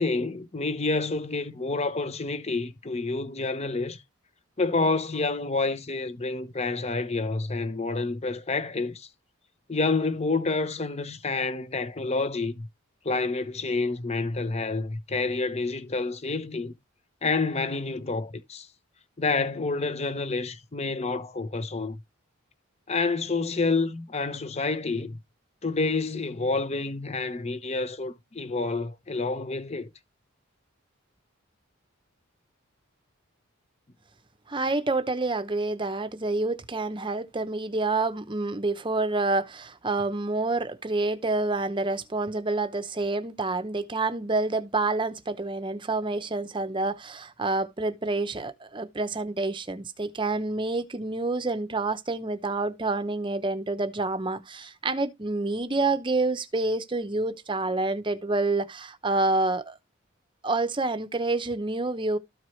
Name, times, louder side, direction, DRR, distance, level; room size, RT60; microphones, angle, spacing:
voice 1, 0.0-4.0 4.6-9.1 9.7-12.7 13.0-16.7 17.2-18.7 19.2-22.0 22.9-25.2 25.6-29.9, left 3 dB, 30° left, 0.8 m, -28 dB
voice 2, 34.5-59.8 60.4-62.2, right 2 dB, 25° right, 0.8 m, -28 dB
13.5 x 4.6 x 3.2 m
head